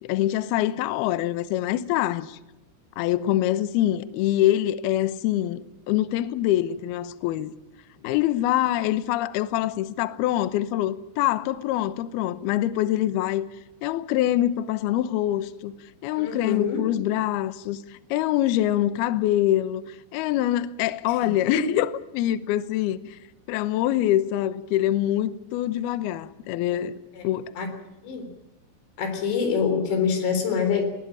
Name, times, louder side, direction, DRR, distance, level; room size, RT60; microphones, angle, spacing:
voice 1, 0.0-2.4 3.0-5.6 5.9-7.5 8.0-13.5 13.8-15.7 16.0-17.8 18.1-23.2 23.5-26.9 27.2-27.5, left 13 dB, 85° left, 2.2 m, -24 dB
voice 2, 16.2-16.9 21.1-21.2 21.5-21.6 26.7-27.2 27.6-27.7 28.0-28.3 29.0-30.9, left 6 dB, 60° left, 5.8 m, -26 dB
20.5 x 19.5 x 8.8 m
omnidirectional pair, 5.8 m